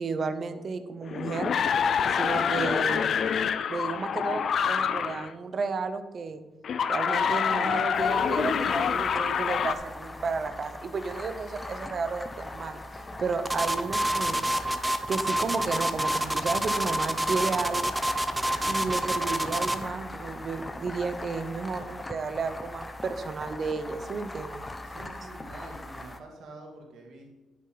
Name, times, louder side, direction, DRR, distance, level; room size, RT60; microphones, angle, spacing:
voice 1, 0.0-1.5 2.1-3.1 3.7-6.4 6.9-12.8 13.2-14.4 15.1-17.9 18.6-24.7, right 4 dB, 45° right, 10 dB, 1.0 m, -32 dB
sound 1, 1.0-5.3 6.6-9.7, left 7 dB, 60° left, 0.6 m, -26 dB
sound 2, 7.9-26.2, left 2 dB, 15° left, 1.0 m, -41 dB
sound 3, 13.5-19.9, right 1 dB, 10° right, 0.8 m, -27 dB
voice 2, 24.8-27.4, right 2 dB, 75° right, 0 dB, 2.5 m, -46 dB
10.5 x 8.6 x 4.1 m, 1.1 s
cardioid pair, 90°, 0 cm